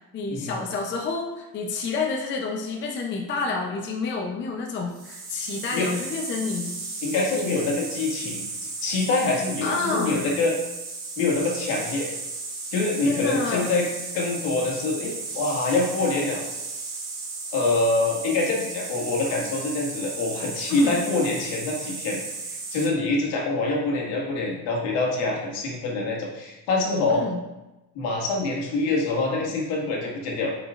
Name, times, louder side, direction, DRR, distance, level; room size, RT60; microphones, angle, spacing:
voice 1, 0.0-6.7 7.3-7.5 9.6-10.3 13.0-13.7 20.7-21.0 27.1-27.4, left 4 dB, 25° left, 0 dB, 0.6 m, -29 dB
sound 1, 4.9-22.9, right 3 dB, 55° right, 2.1 m, -35 dB
voice 2, 7.0-10.5 11.2-12.1 12.7-16.4 17.5-22.2 22.5-27.2 27.9-30.5, left 3 dB, 70° left, -2 dB, 1.9 m, -25 dB
8.5 x 5.0 x 2.5 m, 1.0 s
cardioid pair, 160°, 45 cm